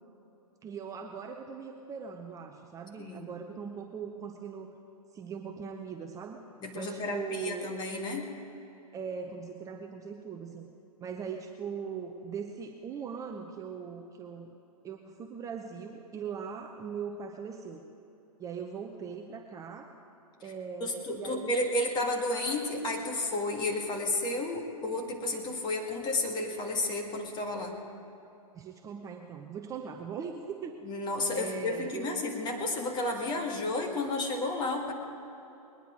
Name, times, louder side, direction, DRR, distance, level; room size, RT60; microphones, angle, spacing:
voice 1, 0.6-4.8 5.1-6.5 6.7-7.7 8.9-10.7 11.0-14.5 14.8-17.8 18.4-20.0 20.4-21.5 28.5-30.8 31.3-32.2, right 6 dB, 15° right, 4 dB, 0.7 m, -40 dB
voice 2, 6.6-8.2 20.4-20.5 20.8-27.7 30.8-34.9, left 2 dB, 20° left, 2 dB, 1.9 m, -32 dB
20.5 x 10.0 x 5.1 m, 3.0 s
hypercardioid pair, 120°, 20 cm